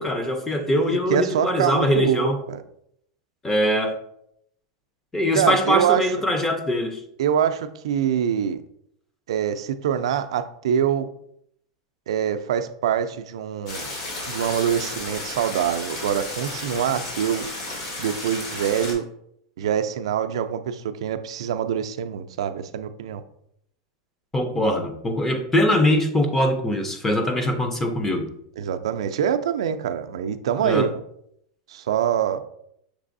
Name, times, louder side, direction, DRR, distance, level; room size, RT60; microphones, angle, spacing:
voice 1, 0.0-2.4 3.4-4.0 5.1-7.0 24.3-28.3 30.6-30.9, left 1 dB, 10° left, 5 dB, 0.5 m, -22 dB
voice 2, 1.1-2.6 5.3-6.1 7.2-8.6 9.3-11.1 12.1-13.9 14.3-17.5 18.0-19.0 19.6-23.2 28.6-30.9 31.7-32.4, right 9 dB, 90° right, 9 dB, 0.3 m, -24 dB
sound 1, 13.7-18.9, left 2 dB, 55° left, 1.7 m, -33 dB
6.0 x 3.2 x 2.6 m, 0.73 s
supercardioid pair, 155°, 3 cm